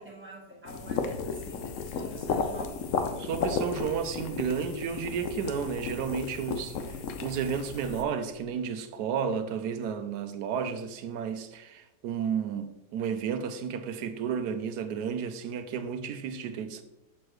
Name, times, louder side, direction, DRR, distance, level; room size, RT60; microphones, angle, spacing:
voice 1, 0.0-2.8, right 2 dB, 5° right, 1.5 m, -46 dB
sound 1, 0.7-8.0, left 5 dB, 60° left, 0.9 m, -34 dB
voice 2, 3.2-16.8, right 7 dB, 75° right, 1.1 m, -32 dB
6.8 x 6.2 x 3.2 m
omnidirectional pair, 1.8 m